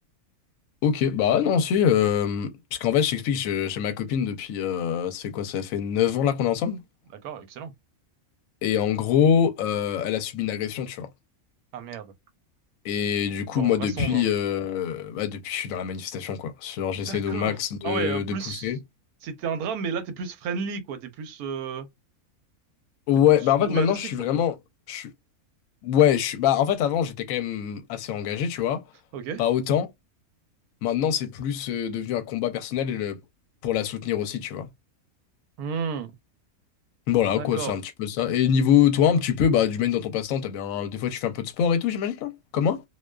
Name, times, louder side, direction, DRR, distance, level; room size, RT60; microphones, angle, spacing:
voice 1, 0.8-6.8 8.6-11.1 12.8-18.4 18.6-18.8 23.1-24.6 24.9-25.1 25.8-28.8 29.4-29.9 30.8-33.2 33.6-34.7 37.1-42.8, left 9 dB, 70° left, 0.9 m, -24 dB
voice 2, 7.2-7.7 11.7-12.1 13.5-14.4 17.1-18.7 19.2-21.9 23.7-24.1 29.1-29.4 35.6-36.1 37.4-37.8, right 6 dB, 85° right, 1.1 m, -32 dB
2.4 x 2.3 x 2.2 m
omnidirectional pair, 1.5 m